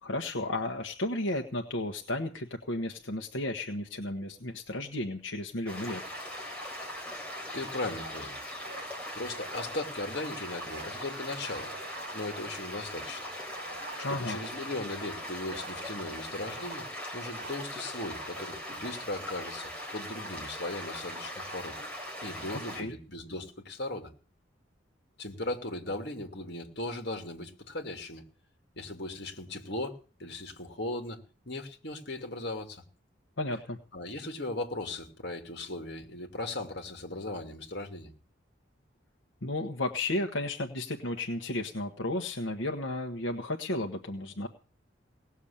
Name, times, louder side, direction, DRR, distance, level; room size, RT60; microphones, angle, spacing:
voice 1, 0.0-6.0 14.0-14.4 22.5-22.9 33.4-33.8 39.4-44.5, left 1 dB, 85° left, 4 dB, 1.4 m, -33 dB
sound 1, 5.7-22.8, equal, 5° left, 4.1 m, -40 dB
sound 2, 6.6-6.8 8.6-8.9 9.2-9.9 10.6-11.0 11.3-12.4 12.9-13.1 13.5-14.5 15.4-16.2 16.5-16.9 17.2-17.6 18.2-18.4, right 3 dB, 80° right, 2.4 m, -48 dB
voice 2, 6.9-7.2 7.5-8.4 9.1-11.7 12.1-13.2 14.1-16.9 17.1-21.7 22.2-24.1 25.2-28.2 28.8-32.8 33.9-38.1, left 2 dB, 55° left, 4 dB, 2.8 m, -38 dB
18.5 x 7.3 x 8.7 m, 0.38 s
head